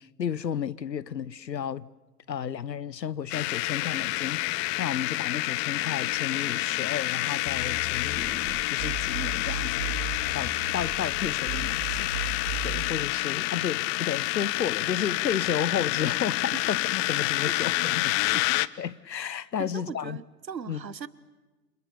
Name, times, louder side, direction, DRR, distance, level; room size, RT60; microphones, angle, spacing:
voice 1, 0.0-1.9 2.3-9.9 10.3-18.4 18.8-20.2 20.7-20.8, left 8 dB, 80° left, 1.1 m, -33 dB
sound 1, 3.3-18.7, left 22 dB, 35° left, 0.8 m, -28 dB
sound 2, 7.5-12.9, right 3 dB, 40° right, 4.5 m, -36 dB
voice 2, 19.6-21.1, right 7 dB, 85° right, 1.4 m, -39 dB
28.5 x 28.5 x 6.9 m
figure-of-eight pair, 100°, 50 cm